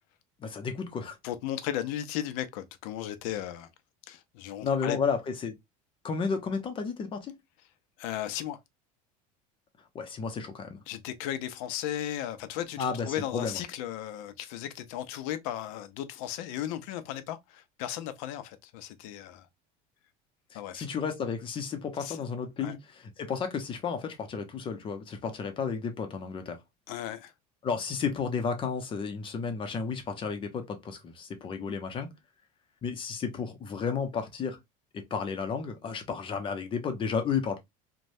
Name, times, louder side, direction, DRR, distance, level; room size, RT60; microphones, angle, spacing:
voice 1, 0.4-1.2 4.6-5.5 6.0-7.3 9.9-10.8 12.8-13.6 20.5-26.6 27.6-32.1 32.8-34.6 34.9-37.6, left 5 dB, 30° left, 0.7 m, -32 dB
voice 2, 1.2-3.7 4.1-5.0 8.0-8.6 10.9-19.5 20.5-20.9 22.0-22.2 22.6-22.8 26.9-27.3, left 11 dB, 80° left, 0.5 m, -36 dB
3.1 x 2.2 x 2.6 m
cardioid pair, 135°, 17 cm